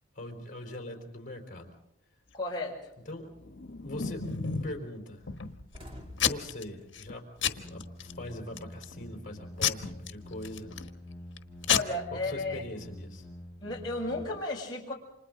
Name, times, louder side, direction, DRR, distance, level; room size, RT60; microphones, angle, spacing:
voice 1, 0.1-1.7 3.0-3.3 3.7-5.3 6.2-10.7 12.1-13.3, left 1 dB, 45° left, 2 dB, 4.3 m, -42 dB
voice 2, 2.3-2.8 11.7-12.6 13.6-14.9, left 2 dB, 20° left, -4 dB, 6.3 m, -33 dB
Packing tape duct tape / Tearing, 3.4-4.8 5.3-5.8 6.2-6.6 6.9-7.1 7.4-8.1 8.6-8.9 9.6-10.9 11.4-11.5 11.6-11.8, left 8 dB, 80° left, 1.3 m, -30 dB
sound 1, 3.8-4.0 4.3-4.5 4.8-4.9 5.2-8.2 8.5-10.2, left 1 dB, 30° right, 2.8 m, -51 dB
sound 2, 7.6-14.2, left 1 dB, 5° left, 7.1 m, -47 dB
29.5 x 26.5 x 3.9 m, 0.79 s
head